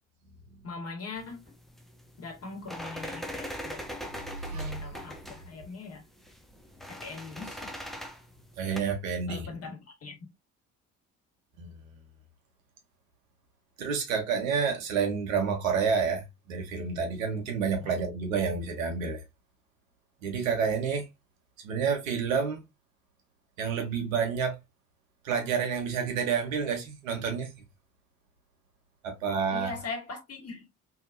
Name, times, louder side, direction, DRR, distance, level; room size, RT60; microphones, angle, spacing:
voice 1, 0.6-1.4 2.2-3.8 4.5-6.0 6.9-7.7 9.3-10.2 17.8-18.0 29.5-30.6, left 4 dB, 35° left, 1.4 m, -41 dB
sound 1, 1.2-8.8, equal, ahead, 0.4 m, -41 dB
voice 2, 4.4-4.7 8.6-9.5 11.6-11.8 13.8-19.2 20.2-21.1 21.6-22.6 23.6-24.6 25.2-27.5 29.0-29.7, right 6 dB, 75° right, 0.8 m, -29 dB
2.7 x 2.6 x 2.5 m
figure-of-eight pair, 50°, 41 cm